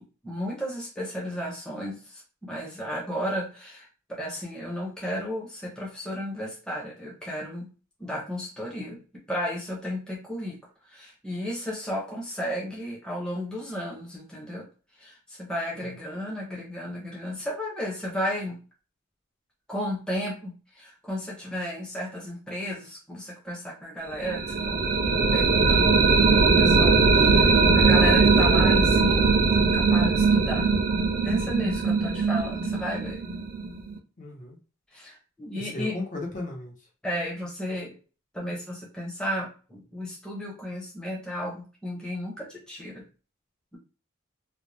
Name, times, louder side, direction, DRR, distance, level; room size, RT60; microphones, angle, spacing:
voice 1, 0.2-7.7 8.0-9.0 9.3-10.6 10.9-14.7 15.0-18.6 19.7-24.9 25.2-30.7 31.2-33.2 34.9-36.0 37.0-37.9 38.3-43.0, equal, 5° left, -4 dB, 0.7 m, -34 dB
sound 1, 24.2-34.0, right 4 dB, 45° right, 0.4 m, -20 dB
voice 2, 34.2-34.6 35.5-36.7, left 2 dB, 40° left, 0 dB, 1.0 m, -35 dB
2.5 x 2.1 x 3.2 m, 0.36 s
head